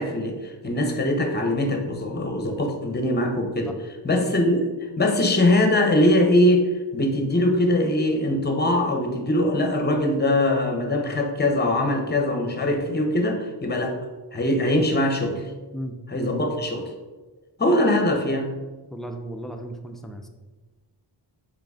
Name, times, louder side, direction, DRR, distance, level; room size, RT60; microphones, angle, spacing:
voice 1, 0.0-3.7 4.0-4.7 5.0-6.7 6.9-13.9 14.3-15.4 16.1-16.9 17.6-18.5, left 1 dB, 20° left, 3 dB, 0.7 m, -22 dB
voice 2, 18.9-20.3, right 1 dB, ahead, 4 dB, 0.3 m, -35 dB
3.8 x 3.3 x 3.6 m, 1.2 s
cardioid pair, 65°, 46 cm